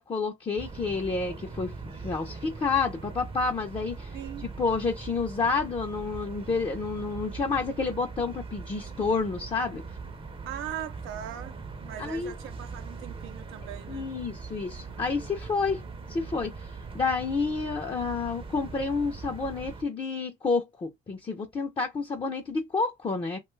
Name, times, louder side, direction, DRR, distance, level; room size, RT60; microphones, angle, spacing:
voice 1, 0.0-1.7 2.0-9.8 12.0-12.3 13.9-15.8 16.1-23.4, left 4 dB, 25° left, 0.5 m, -29 dB
sound 1, 0.6-19.8, right 4 dB, 25° right, 0.6 m, -41 dB
voice 2, 4.1-4.5 10.5-14.1, right 11 dB, 90° right, 0.5 m, -40 dB
2.6 x 2.3 x 3.1 m
cardioid pair, 90°, 20 cm